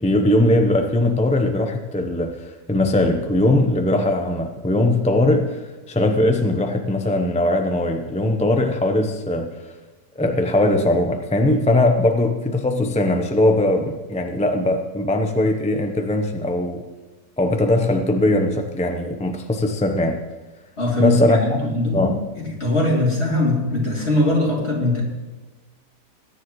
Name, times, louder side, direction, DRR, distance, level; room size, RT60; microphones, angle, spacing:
voice 1, 0.0-9.5 10.2-16.8 17.4-20.2 21.0-21.4 21.9-22.2, left 1 dB, 10° left, 4 dB, 0.4 m, -20 dB
voice 2, 20.8-25.0, left 2 dB, 40° left, -3 dB, 3.1 m, -21 dB
20.5 x 10.0 x 3.1 m, 1.2 s
omnidirectional pair, 1.7 m